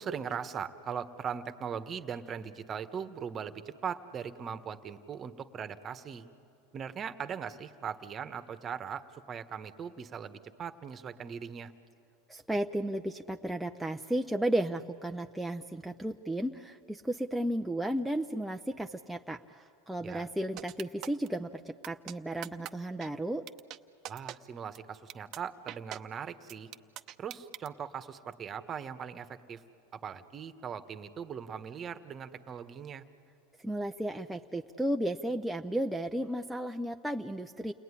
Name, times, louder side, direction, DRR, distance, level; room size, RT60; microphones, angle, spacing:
voice 1, 0.0-6.3 6.7-11.7 20.0-20.3 24.1-26.7 27.2-29.6 29.9-33.1, right 7 dB, 30° right, 10 dB, 1.3 m, -40 dB
voice 2, 12.3-23.4 33.6-37.7, right 1 dB, 5° right, 3 dB, 0.7 m, -34 dB
sound 1, 20.6-21.3 21.8-22.1 22.4-22.7 23.0-23.1 23.5-23.8 24.0-24.4 24.7-24.8 25.1-25.4 25.7-26.0 26.5-27.7, right 13 dB, 45° right, 0.8 m, -41 dB
29.5 x 20.0 x 9.9 m, 2.6 s
hypercardioid pair, 110°, 0 cm